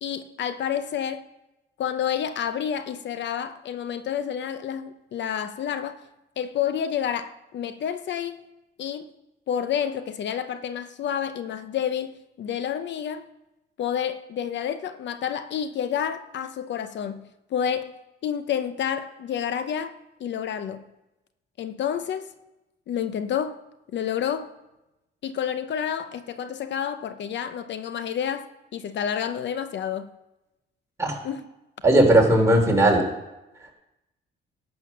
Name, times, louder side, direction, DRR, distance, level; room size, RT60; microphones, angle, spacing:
voice 1, 0.0-1.2 1.8-6.0 6.4-8.4 8.8-9.1 9.5-13.3 13.8-17.9 18.2-20.8 21.6-22.3 22.9-23.6 23.9-24.5 25.2-30.1 31.2-31.4, left 8 dB, 65° left, 0.7 m, -29 dB
voice 2, 31.8-33.0 33.6-33.7, right 1 dB, 15° right, 3.4 m, -18 dB
11.5 x 7.6 x 6.0 m
cardioid pair, 90°, 20 cm